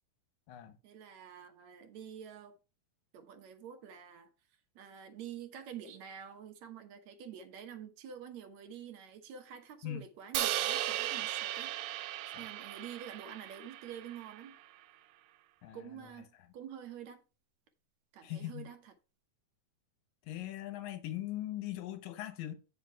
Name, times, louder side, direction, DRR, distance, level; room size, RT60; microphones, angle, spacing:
voice 1, 0.8-2.6 3.1-4.3 4.8-11.7 12.4-14.6 15.7-17.2 18.1-18.9, right 8 dB, 65° right, 1.9 m, -48 dB
Crash cymbal, 10.3-14.5, right 13 dB, 80° right, 2.4 m, -36 dB
voice 2, 15.6-16.1 18.2-18.7 20.3-22.6, left 13 dB, 70° left, 2.4 m, -40 dB
9.1 x 5.6 x 4.5 m
omnidirectional pair, 4.3 m